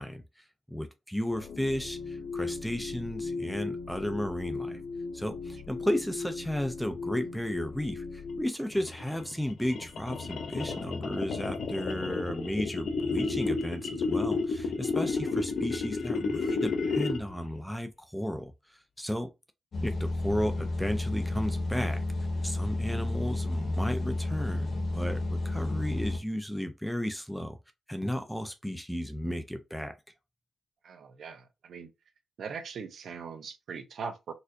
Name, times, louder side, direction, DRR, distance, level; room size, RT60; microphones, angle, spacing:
voice 1, 0.0-4.8 5.1-19.3 19.8-22.0 22.4-27.6 27.9-30.0, equal, ahead, 0.4 m, -34 dB
sound 1, 1.3-8.5, left 4 dB, 80° left, 1.0 m, -38 dB
sound 2, 8.7-17.4, left 4 dB, 65° left, 0.5 m, -31 dB
sound 3, 19.7-26.2, left 2 dB, 45° left, 0.9 m, -31 dB
voice 2, 30.8-31.9 32.4-34.3, right 5 dB, 60° right, 0.6 m, -41 dB
4.2 x 2.5 x 2.5 m
wide cardioid pair, 175°, 0 cm